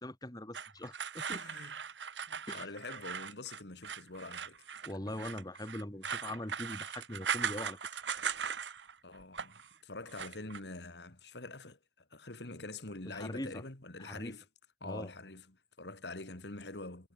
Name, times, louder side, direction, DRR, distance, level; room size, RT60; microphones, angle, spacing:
voice 1, 0.0-1.4 2.5-2.7 4.8-8.0 13.1-13.6 14.0-14.3 14.8-15.1, left 1 dB, 20° left, 2.6 m, -42 dB
sound 1, 0.5-8.9 9.2-9.7 10.1-10.6, right 7 dB, 85° right, 1.5 m, -39 dB
voice 2, 1.3-1.8 2.3-5.1 9.0-11.8 12.1-14.4 14.8-17.1, left 2 dB, 65° left, 2.4 m, -46 dB
head